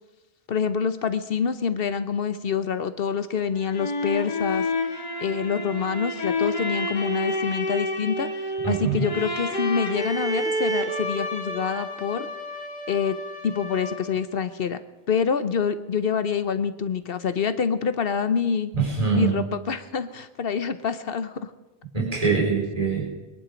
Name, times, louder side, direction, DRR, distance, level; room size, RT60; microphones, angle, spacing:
voice 1, 0.5-4.6 5.2-8.3 8.7-12.3 12.9-13.2 13.4-14.8 15.1-18.7 19.1-21.5, left 6 dB, 65° left, 11 dB, 1.0 m, -26 dB
sound 1, 3.4-14.2, left 1 dB, 45° left, 2.0 m, -29 dB
voice 2, 8.6-9.1 18.7-19.5 21.9-23.0, right 5 dB, 35° right, -5 dB, 4.0 m, -24 dB
23.0 x 11.0 x 5.1 m, 1.1 s
omnidirectional pair, 1.1 m